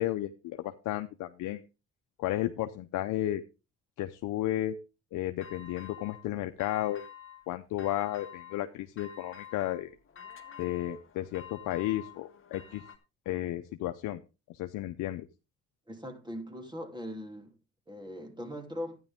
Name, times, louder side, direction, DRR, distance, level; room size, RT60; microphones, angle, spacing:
voice 1, 0.0-1.6 2.2-3.4 4.0-4.8 5.1-7.0 7.5-9.9 10.6-12.8 13.3-14.2 14.5-15.2, left 14 dB, 90° left, 0.7 m, -33 dB
sound 1, 5.4-6.3 6.6-7.5 7.8-8.6 9.0-13.0, left 8 dB, 45° left, 1.8 m, -49 dB
voice 2, 15.9-17.5 17.9-19.0, equal, 15° right, 2.9 m, -40 dB
12.5 x 9.8 x 3.6 m
cardioid pair, 90°, 30 cm